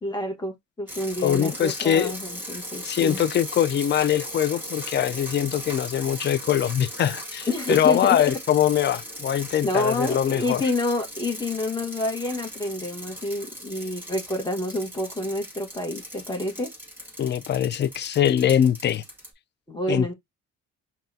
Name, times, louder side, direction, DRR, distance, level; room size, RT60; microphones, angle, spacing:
voice 1, 0.0-3.2 7.5-8.3 9.6-16.7 19.7-20.1, left 1 dB, 15° left, 1.3 m, -28 dB
sound 1, 0.9-19.3, equal, 5° right, 1.9 m, -38 dB
voice 2, 1.2-2.1 2.8-10.6 17.2-19.0 19.9-20.1, left 10 dB, 35° left, 0.4 m, -23 dB
5.4 x 2.3 x 2.6 m
cardioid pair, 90°, 30 cm